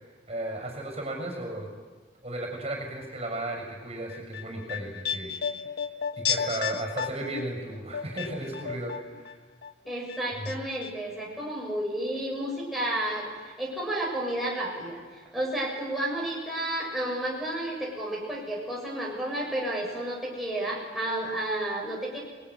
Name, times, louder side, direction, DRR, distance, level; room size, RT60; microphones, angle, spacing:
voice 1, 0.3-1.7 2.2-5.3 6.2-9.3 10.4-10.5, right 1 dB, 35° right, 2 dB, 6.8 m, -34 dB
sound 1, 4.1-9.3 9.6-10.5 10.8-10.9, left 7 dB, 65° left, 1.4 m, -33 dB
voice 2, 9.9-15.0 15.3-22.2, right 1 dB, ahead, -4 dB, 6.8 m, -31 dB
28.5 x 21.0 x 9.8 m, 1.4 s
head